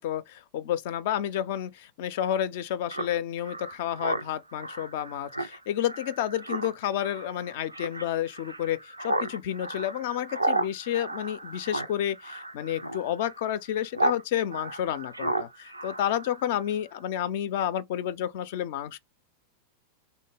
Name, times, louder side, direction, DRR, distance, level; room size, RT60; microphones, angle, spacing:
voice 1, 0.0-19.0, left 11 dB, 50° left, 0.4 m, -30 dB
Speech synthesizer, 2.9-14.2 14.5-16.7, right 2 dB, 85° right, 0.4 m, -33 dB
3.4 x 2.1 x 3.2 m
figure-of-eight pair, 90°, 0 cm